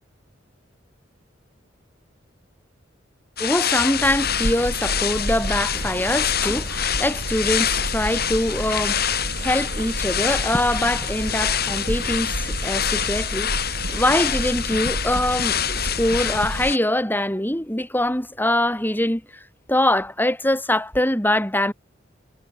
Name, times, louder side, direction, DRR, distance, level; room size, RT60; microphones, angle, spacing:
sound 1, 3.4-16.8, left 9 dB, 55° left, 6.9 m, -26 dB
voice 1, 3.4-19.2 19.7-21.7, left 1 dB, 10° left, 5.2 m, -23 dB
sound 2, 4.0-16.7, right 1 dB, 90° right, 4.8 m, -31 dB
head